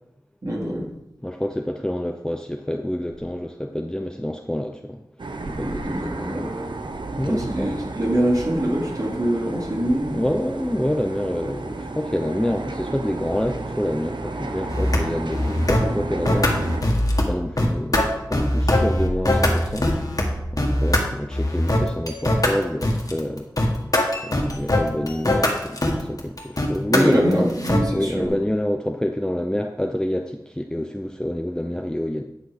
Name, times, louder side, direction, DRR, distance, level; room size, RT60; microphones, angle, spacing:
voice 1, 0.4-0.9 5.6-6.6 7.3-10.3 26.9-28.4, equal, 55° right, -4 dB, 2.5 m, -24 dB
voice 2, 1.2-5.0 5.4-6.0 7.2-7.7 10.1-16.9 17.3-23.5 24.2-27.5 27.9-32.2, left 1 dB, 10° left, 4 dB, 0.6 m, -27 dB
sound 1, 5.2-16.8, right 2 dB, 85° right, 0.9 m, -32 dB
sound 2, 14.7-15.0 15.3-15.9 16.3-17.2 17.6-20.2 20.6-21.0 21.3-27.9, left 1 dB, 50° left, 1.9 m, -21 dB
10.5 x 6.2 x 5.1 m, 0.87 s
wide cardioid pair, 50°, 8 cm